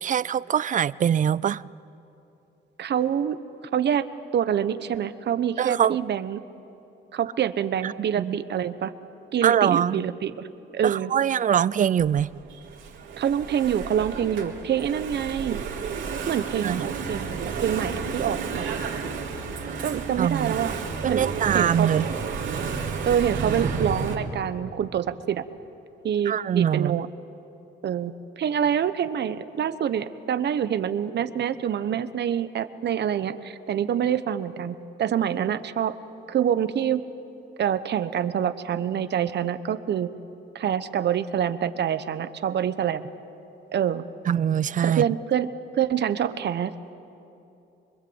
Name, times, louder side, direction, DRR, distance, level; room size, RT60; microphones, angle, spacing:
voice 1, 0.0-1.7 5.6-6.0 7.8-8.4 9.4-10.0 10.8-12.3 16.6-16.8 20.2-20.5 21.0-22.1 26.3-27.0 44.3-45.1, right 9 dB, 40° right, 20 dB, 0.5 m, -23 dB
voice 2, 2.8-3.4 3.7-4.0 4.3-6.4 7.1-8.9 9.3-10.5 10.7-11.1 13.2-15.6 16.3-18.8 19.8-20.7 21.0-21.2 21.5-21.9 23.1-25.4 26.0-27.1 27.8-35.9 36.3-37.0 37.6-40.1 40.5-43.1 43.7-44.0 44.8-45.5 45.8-46.7, right 9 dB, 60° right, 12 dB, 1.1 m, -26 dB
Engine / Mechanisms, 12.0-24.1, right 5 dB, 75° right, 3.7 m, -31 dB
25.0 x 23.0 x 8.1 m, 2.8 s
cardioid pair, 90°, 20 cm